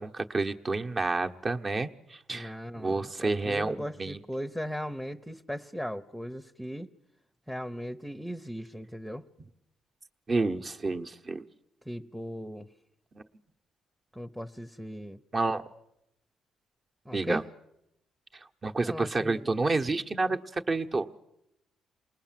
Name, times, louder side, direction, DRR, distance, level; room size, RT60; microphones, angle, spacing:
voice 1, 0.0-4.2 10.3-11.4 13.1-13.2 15.3-15.6 17.1-17.4 18.6-21.1, right 3 dB, 35° right, 6 dB, 1.1 m, -29 dB
voice 2, 2.3-6.9 7.5-9.2 11.9-12.7 14.1-15.2 17.1-17.4 18.8-19.7, equal, ahead, 8 dB, 0.8 m, -38 dB
28.0 x 20.0 x 7.5 m, 0.84 s
cardioid pair, 90°, 0 cm